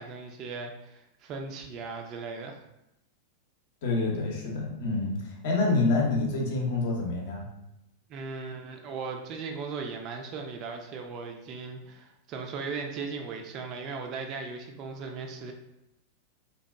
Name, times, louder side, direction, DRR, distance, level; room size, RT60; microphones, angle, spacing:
voice 1, 0.0-2.6 8.1-15.5, right 4 dB, 35° right, 3 dB, 0.3 m, -37 dB
voice 2, 3.8-7.4, left 3 dB, 55° left, -1 dB, 0.6 m, -27 dB
2.8 x 2.2 x 2.2 m, 0.86 s
figure-of-eight pair, 90°, 0 cm